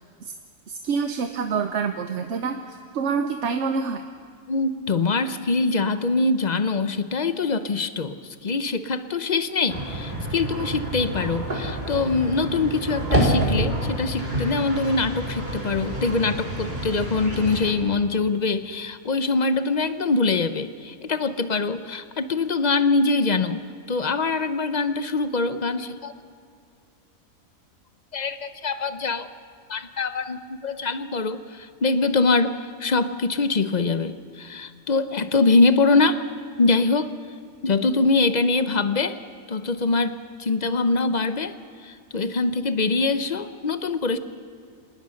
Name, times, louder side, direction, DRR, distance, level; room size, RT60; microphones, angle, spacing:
voice 1, 0.8-2.6 2.9-4.0, right 5 dB, 55° right, 7 dB, 1.1 m, -26 dB
voice 2, 4.5-23.6 23.9-26.1 28.1-29.3 29.7-36.2 36.6-37.1 37.6-39.2 39.5-41.5 41.8-44.2, left 3 dB, 40° left, 11 dB, 0.7 m, -23 dB
sound 1, 9.7-17.7, right 1 dB, 30° right, 3.5 m, -28 dB
26.0 x 19.5 x 6.5 m, 2.3 s
omnidirectional pair, 1.5 m